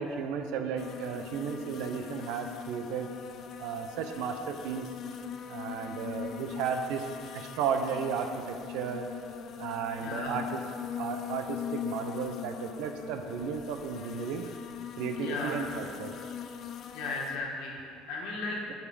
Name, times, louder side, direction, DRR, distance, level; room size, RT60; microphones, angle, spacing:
voice 1, 0.0-3.1 3.6-4.9 5.5-7.1 7.3-9.1 9.6-10.6 11.0-14.5 15.0-16.1, right 6 dB, 70° right, 6 dB, 0.7 m, -34 dB
sound 1, 0.8-17.4, left 9 dB, 40° left, 0.5 m, -41 dB
voice 2, 10.0-10.4 15.2-15.6 16.9-17.8 18.1-18.6, left 3 dB, 65° left, -1 dB, 1.7 m, -35 dB
8.0 x 7.2 x 5.1 m, 2.6 s
cardioid pair, 160°, 0 cm